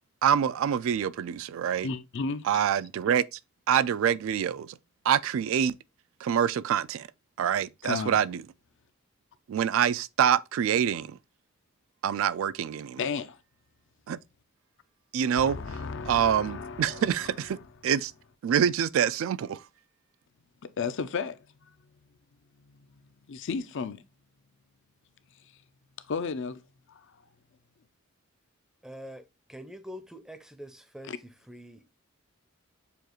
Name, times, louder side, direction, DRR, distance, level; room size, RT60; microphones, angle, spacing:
voice 1, 0.2-1.9 2.4-3.4 3.7-4.8 5.0-5.8 6.2-7.1 7.4-8.4 9.5-11.2 12.0-13.0 14.1-14.2 15.1-15.6 16.1-17.6 17.8-18.1 18.4-19.6, right 8 dB, 70° right, 0.3 m, -26 dB
voice 2, 1.8-2.6 7.8-8.2 13.0-13.4 15.4-17.1 20.8-21.4 22.7-22.8 23.3-24.0 26.1-26.6 26.9-27.1 31.1-31.2, left 5 dB, 60° left, 0.5 m, -33 dB
voice 3, 28.8-29.2 29.5-31.9, equal, 5° right, 0.5 m, -45 dB
6.8 x 2.4 x 2.9 m
head